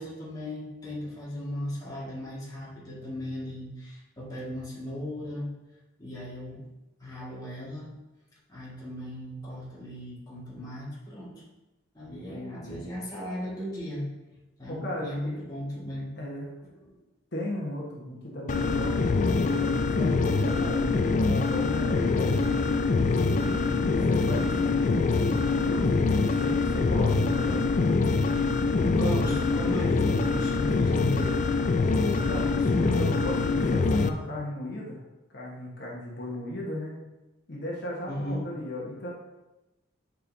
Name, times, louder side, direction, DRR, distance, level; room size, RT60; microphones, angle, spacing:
voice 1, 0.0-5.5 6.0-6.6 7.0-7.9 8.5-11.4 11.9-14.1 14.6-16.1 16.7-17.0 28.9-31.6 31.9-32.6 38.1-38.5, equal, 20° left, -6 dB, 1.7 m, -36 dB
voice 2, 12.1-12.9 14.7-15.3 16.2-16.5 17.3-21.0 21.3-27.7 32.1-32.5 32.8-35.0 35.3-37.0 37.5-39.1, left 1 dB, 60° left, -3 dB, 1.2 m, -36 dB
sound 1, 18.5-34.1, left 3 dB, 40° left, 0.4 m, -24 dB
9.0 x 5.1 x 2.7 m, 1.0 s
head